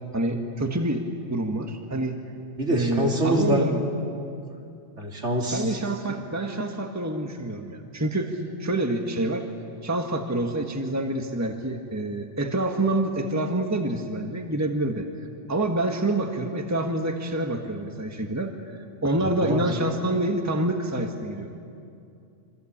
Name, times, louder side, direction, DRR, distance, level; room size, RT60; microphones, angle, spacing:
voice 1, 0.1-2.3 2.7-3.8 5.5-9.4 9.8-15.0 15.5-18.5 19.0-21.5, right 1 dB, 15° right, 3 dB, 1.5 m, -27 dB
voice 2, 2.6-3.7 5.0-5.8 6.1-6.2 19.2-19.6, equal, 60° right, 0 dB, 3.7 m, -25 dB
27.5 x 25.0 x 8.7 m, 2.5 s
omnidirectional pair, 1.3 m